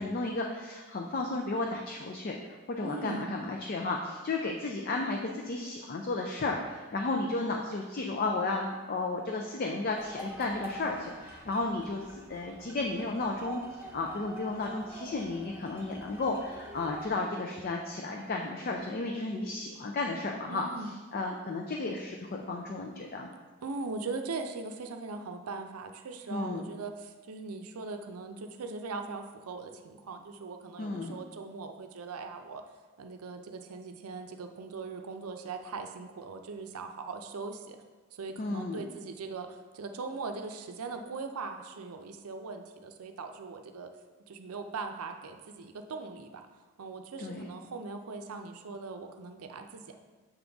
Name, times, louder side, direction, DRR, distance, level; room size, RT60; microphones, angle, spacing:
voice 1, 0.0-2.4 2.7-13.6 13.9-20.6 21.1-23.3 26.3-26.6 30.8-31.2 38.4-38.8 47.2-47.5, left 3 dB, 40° left, 1 dB, 0.4 m, -33 dB
voice 2, 2.8-3.3 20.5-21.0 23.6-32.6 33.0-37.8 38.1-43.9 44.3-46.4 46.8-49.9, right 4 dB, 80° right, 5 dB, 0.5 m, -40 dB
sound 1, 10.0-17.1, equal, 10° right, 0.6 m, -46 dB
7.1 x 3.8 x 3.4 m, 1.3 s
head